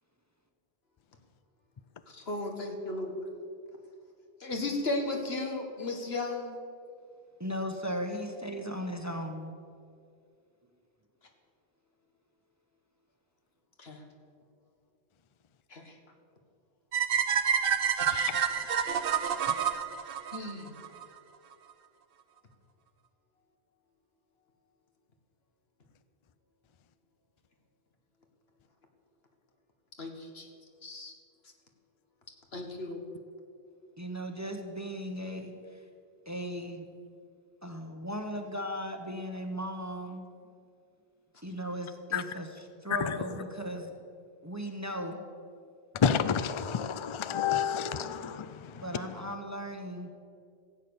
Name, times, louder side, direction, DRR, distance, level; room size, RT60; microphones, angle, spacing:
voice 1, 2.1-3.2 4.4-6.6 13.8-14.0 15.7-15.9 20.3-20.8 30.0-30.5 30.8-31.1 32.5-33.0, left 2 dB, 70° left, 3 dB, 1.9 m, -35 dB
voice 2, 7.4-9.5 34.0-35.8 36.3-36.9 37.6-40.3 41.4-43.9 44.4-45.2 48.8-50.1, equal, 15° right, 4 dB, 0.9 m, -37 dB
sound 1, 16.9-21.0, right 8 dB, 60° right, 0.9 m, -28 dB
voice 3, 46.0-48.5, left 7 dB, 50° left, 12 dB, 0.3 m, -29 dB
15.5 x 8.4 x 7.0 m, 2.4 s
omnidirectional pair, 1.1 m